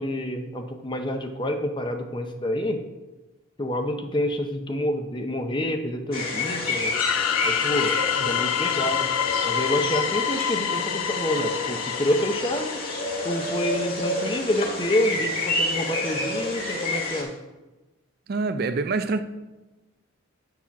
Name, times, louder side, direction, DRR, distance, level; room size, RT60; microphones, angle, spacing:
voice 1, 0.0-2.8 3.6-6.9 7.4-7.9 8.2-9.1 9.4-12.8 13.2-17.3, left 1 dB, 20° left, 0.6 m, -28 dB
sound 1, 6.1-17.2, left 2 dB, 40° left, 2.1 m, -29 dB
sound 2, 6.9-13.6, left 10 dB, 75° left, 0.3 m, -27 dB
voice 2, 18.3-19.2, right 3 dB, 45° right, 0.4 m, -26 dB
8.6 x 4.8 x 5.8 m
head